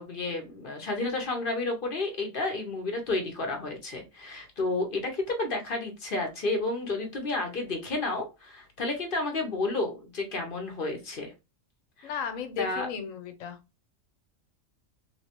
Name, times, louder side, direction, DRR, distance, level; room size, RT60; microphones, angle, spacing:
voice 1, 0.0-11.3 12.0-12.1 12.6-12.9, left 2 dB, 50° left, 3 dB, 0.9 m, -31 dB
voice 2, 12.0-13.6, left 7 dB, 90° left, 8 dB, 1.1 m, -35 dB
3.1 x 3.1 x 2.8 m, 0.27 s
omnidirectional pair, 1.3 m